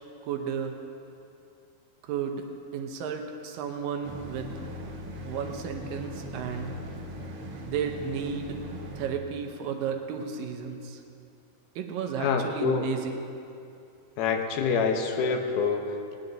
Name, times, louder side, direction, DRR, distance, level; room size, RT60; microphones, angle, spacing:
voice 1, 0.3-0.8 2.0-2.4 2.7-4.5 5.2-6.8 7.6-8.6 9.0-11.0 11.8-13.2, right 7 dB, 75° right, 4 dB, 2.2 m, -33 dB
sound 1, 4.0-9.1, equal, 55° right, 1.4 m, -39 dB
voice 2, 12.2-12.9 14.2-16.2, left 5 dB, 75° left, 4 dB, 2.7 m, -26 dB
19.5 x 10.0 x 3.9 m, 2.6 s
omnidirectional pair, 4.5 m